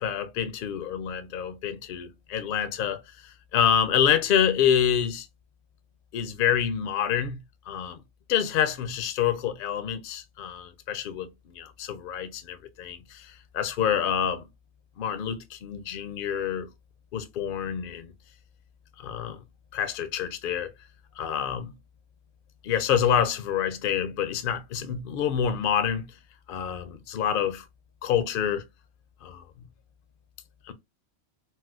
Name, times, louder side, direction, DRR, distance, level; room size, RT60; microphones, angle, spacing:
voice 1, 0.0-5.3 6.1-7.4 7.7-8.0 8.3-14.5 15.0-16.7 17.1-18.1 19.0-19.4 19.7-20.7 21.2-21.8 22.6-26.1 26.5-27.6 28.0-28.6 29.2-29.4 30.6-30.7, left 9 dB, 60° left, 0.6 m, -27 dB
4.2 x 2.0 x 2.4 m
omnidirectional pair, 1.1 m